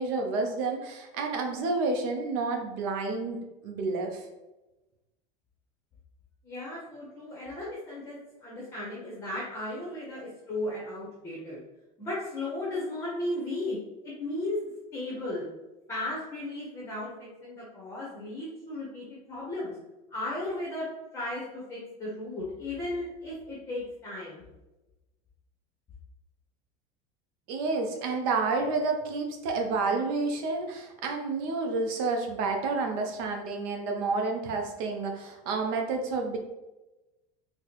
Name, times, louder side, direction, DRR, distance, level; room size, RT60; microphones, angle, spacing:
voice 1, 0.0-4.3 27.5-36.4, right 3 dB, 60° right, 3 dB, 0.6 m, -30 dB
voice 2, 6.4-11.6 12.0-13.8 14.0-14.6 14.9-15.5 15.9-19.7 20.1-20.9 21.1-24.4, left 1 dB, 15° left, -5 dB, 0.7 m, -35 dB
4.1 x 2.1 x 2.9 m, 1.0 s
cardioid pair, 165°, 17 cm